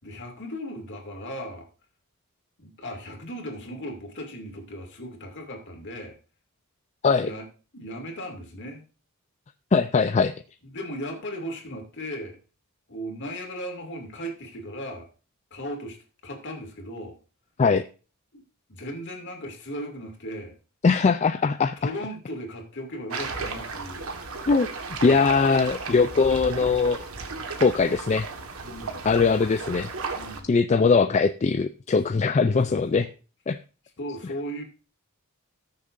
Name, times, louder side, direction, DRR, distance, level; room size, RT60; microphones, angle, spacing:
voice 1, 0.0-1.7 2.6-6.2 7.2-7.5 7.7-8.8 10.7-12.4 12.9-15.1 15.5-16.0 16.2-17.2 18.3-18.4 18.7-20.5 21.8-24.1 24.9-25.2 28.6-29.1 30.1-30.5 32.4-33.1 34.0-34.6, equal, 55° left, 2 dB, 2.5 m, -37 dB
voice 2, 9.7-10.3 17.6-17.9 20.8-21.8 24.4-24.7 25.0-27.0 27.6-28.3 29.0-29.9 30.5-33.1 33.5-33.6, left 4 dB, 30° left, 10 dB, 0.3 m, -21 dB
sound 1, 23.1-30.4, right 4 dB, 75° right, 1.5 m, -35 dB
19.0 x 6.7 x 2.6 m, 0.36 s
head